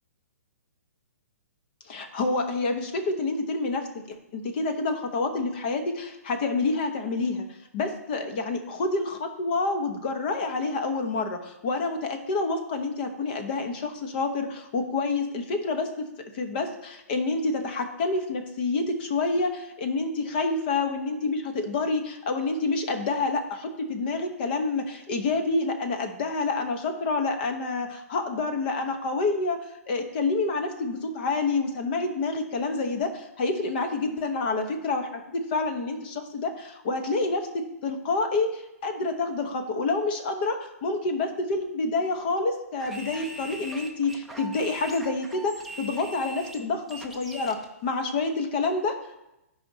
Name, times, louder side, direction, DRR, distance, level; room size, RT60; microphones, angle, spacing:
voice 1, 1.9-7.5 7.7-15.9 16.3-29.6 29.9-47.6 47.8-48.9, left 3 dB, 40° left, 6 dB, 1.0 m, -28 dB
sound 1, 42.8-47.6, right 1 dB, ahead, 0.6 m, -41 dB
12.5 x 5.0 x 2.8 m, 0.93 s
hypercardioid pair, 165°, 8 cm